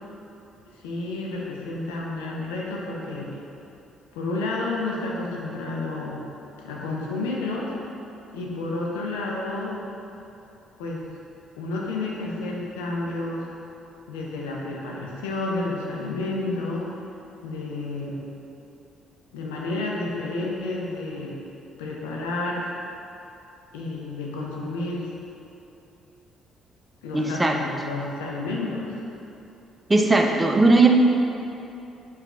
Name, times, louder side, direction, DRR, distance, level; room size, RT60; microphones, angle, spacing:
voice 1, 0.8-3.3 4.1-6.2 6.6-7.7 8.3-9.8 10.8-11.1 11.6-13.5 14.1-16.9 17.4-18.2 19.3-21.3 21.8-22.7 23.7-25.1 27.0-29.0, left 2 dB, 90° left, -3 dB, 0.4 m, -30 dB
voice 2, 27.1-27.6 29.9-30.9, right 3 dB, 20° right, 3 dB, 0.4 m, -18 dB
3.1 x 2.3 x 3.6 m, 2.8 s
hypercardioid pair, 55°, 0 cm